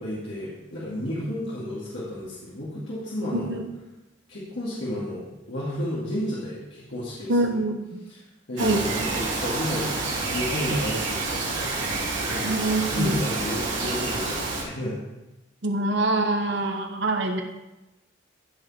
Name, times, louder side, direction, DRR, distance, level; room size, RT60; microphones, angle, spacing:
voice 1, 0.0-3.6 4.3-7.6 8.1-8.2 8.5-10.0 10.2-11.7 12.2-14.9, left 1 dB, 70° left, -9 dB, 2.5 m, -32 dB
voice 2, 3.3-3.6 7.3-8.0 8.6-8.9 12.4-13.2 15.6-17.4, right 2 dB, 70° right, 4 dB, 1.2 m, -25 dB
Bird vocalization bird call bird song, 8.6-14.6, right 3 dB, 85° right, 3.2 m, -28 dB
15.0 x 5.4 x 4.3 m, 1.0 s
head